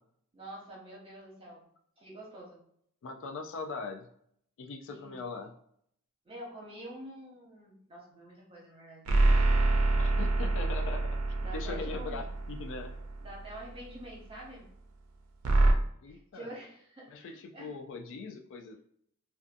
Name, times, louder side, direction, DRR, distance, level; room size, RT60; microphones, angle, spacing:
voice 1, 0.3-1.6 2.0-2.6 4.9-5.2 6.2-9.9 11.4-12.3 13.2-14.7 16.1-17.7, right 1 dB, 25° right, -3 dB, 0.8 m, -47 dB
voice 2, 3.0-4.1 4.6-5.5 10.0-11.2 11.5-12.9 16.0-16.5 17.1-18.8, left 4 dB, 60° left, 4 dB, 0.3 m, -40 dB
sound 1, 9.1-13.7 15.4-15.7, right 2 dB, 75° right, 0.4 m, -26 dB
2.5 x 2.3 x 2.5 m, 0.67 s
head